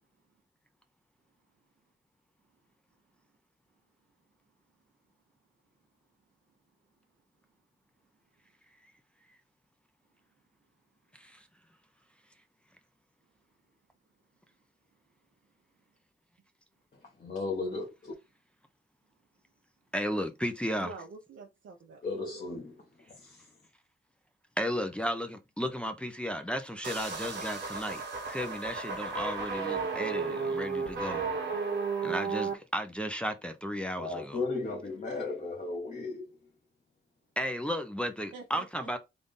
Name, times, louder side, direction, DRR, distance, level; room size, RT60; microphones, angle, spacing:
voice 1, 11.1-11.4 19.9-20.9 24.6-28.0 28.3-31.3 32.0-34.4 37.4-39.0, equal, 5° left, 0.5 m, -34 dB
voice 2, 16.9-18.1 22.0-23.5 34.0-36.4, left 3 dB, 40° left, 1.3 m, -36 dB
voice 3, 20.8-22.0 38.3-39.0, right 4 dB, 85° right, 0.8 m, -47 dB
sound 1, 26.8-32.5, right 5 dB, 60° right, 1.2 m, -33 dB
3.7 x 2.6 x 3.6 m
cardioid pair, 95°, 20 cm